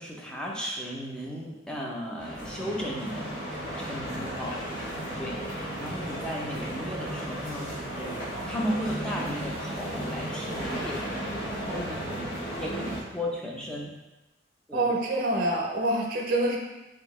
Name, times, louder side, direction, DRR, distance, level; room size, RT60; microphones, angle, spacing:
voice 1, 0.0-3.3 3.8-4.5 5.2-11.3 11.7-12.3 12.6-13.9 14.7-14.9, equal, 5° left, -2 dB, 0.5 m, -35 dB
sound 1, 2.2-13.0, right 1 dB, 50° left, 1.4 m, -34 dB
voice 2, 14.7-16.6, right 1 dB, 50° right, 0 dB, 0.6 m, -26 dB
3.4 x 2.7 x 3.0 m, 1.1 s
head